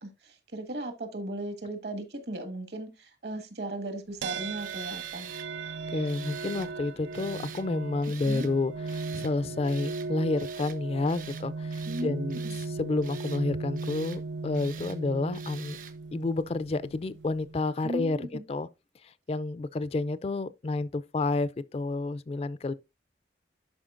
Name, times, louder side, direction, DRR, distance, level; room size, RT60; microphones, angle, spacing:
voice 1, 0.0-5.3 8.2-8.5 11.9-12.5 17.8-18.4, right 1 dB, 70° right, 1.6 m, -36 dB
sound 1, 4.2-17.7, right 4 dB, 85° right, 0.4 m, -37 dB
Tools, 4.6-5.5 6.0-6.7 7.1-7.7 8.0-8.5 8.9-9.3 9.6-10.1 10.4-10.8 11.1-11.5 11.7-12.7 13.0-13.4 13.8-14.2 14.5-15.0 15.3-16.0, right 9 dB, 50° right, 0.8 m, -46 dB
voice 2, 5.6-12.4 12.7-15.8 16.1-18.7 19.3-22.7, left 3 dB, 35° left, 0.3 m, -30 dB
11.5 x 4.9 x 2.4 m
head